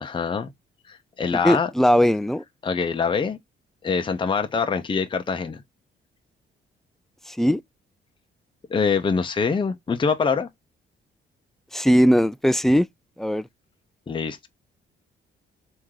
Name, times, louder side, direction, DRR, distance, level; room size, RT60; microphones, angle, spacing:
voice 1, 0.0-0.5 0.9-1.7 2.6-3.4 3.8-5.6 8.7-10.5 14.1-14.5, left 5 dB, 25° left, 0.7 m, -24 dB
voice 2, 1.4-2.4 7.3-7.6 11.7-12.9 13.2-13.5, equal, ahead, 0.3 m, -19 dB
3.6 x 2.7 x 4.7 m
cardioid pair, 90°, 20 cm